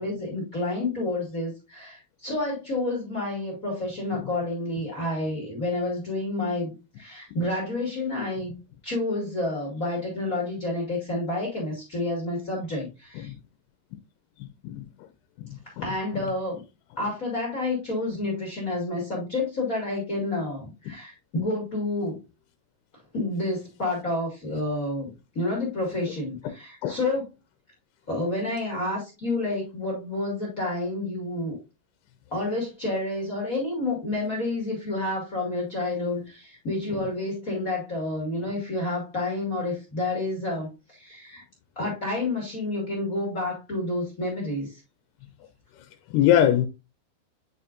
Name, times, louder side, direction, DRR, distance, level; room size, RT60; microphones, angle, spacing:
voice 1, 0.0-8.6 8.8-13.3 15.8-16.6 17.0-22.2 23.1-27.2 28.1-31.6 32.3-41.4 41.7-44.8, left 2 dB, 35° left, 1.5 m, -29 dB
voice 2, 46.1-46.7, left 11 dB, 90° left, 2.7 m, -21 dB
8.9 x 4.3 x 2.5 m
omnidirectional pair, 4.5 m